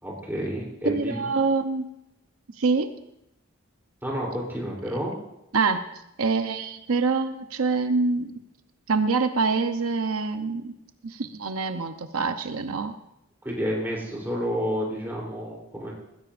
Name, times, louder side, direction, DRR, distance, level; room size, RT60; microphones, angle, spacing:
voice 1, 0.0-1.3 4.0-5.1 13.4-15.9, equal, 10° right, -3 dB, 3.3 m, -30 dB
voice 2, 0.8-1.8 2.6-2.9 5.5-5.8 6.2-8.3 8.9-10.7 11.0-13.0, right 4 dB, 80° right, 8 dB, 0.7 m, -25 dB
20.0 x 15.5 x 2.5 m, 0.84 s
head